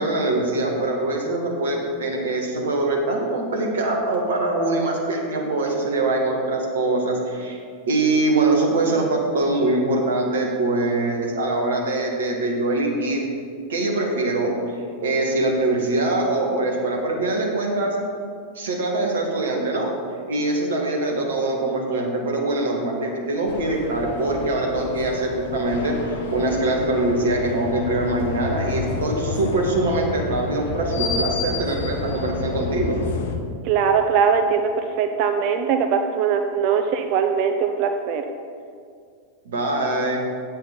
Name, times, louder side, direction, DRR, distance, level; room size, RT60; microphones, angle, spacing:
voice 1, 0.0-7.6 7.9-13.2 13.7-14.6 15.0-18.0 18.6-19.9 20.3-26.0 26.3-33.0 39.5-40.2, right 2 dB, 60° right, 0 dB, 1.9 m, -23 dB
sound 1, 23.5-33.4, left 4 dB, 55° left, 0.9 m, -30 dB
voice 2, 33.6-38.2, right 6 dB, 45° right, 6 dB, 0.6 m, -21 dB
8.5 x 7.6 x 5.5 m, 2.2 s
figure-of-eight pair, 90°, 0 cm